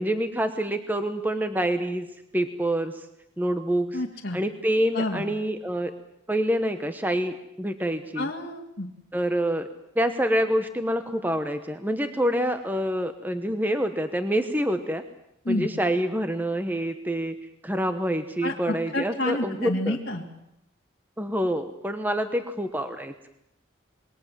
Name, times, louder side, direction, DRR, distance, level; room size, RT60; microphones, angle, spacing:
voice 1, 0.0-2.1 2.3-3.1 3.4-4.0 4.3-5.9 6.3-8.3 9.1-9.7 9.9-15.0 15.5-17.3 17.6-20.0 21.2-23.3, equal, 10° right, 8 dB, 1.1 m, -26 dB
voice 2, 3.9-4.4 4.9-5.2 8.2-8.9 15.4-15.7 18.4-20.2, left 1 dB, 50° left, -2 dB, 2.4 m, -29 dB
27.5 x 21.5 x 7.5 m, 0.81 s
head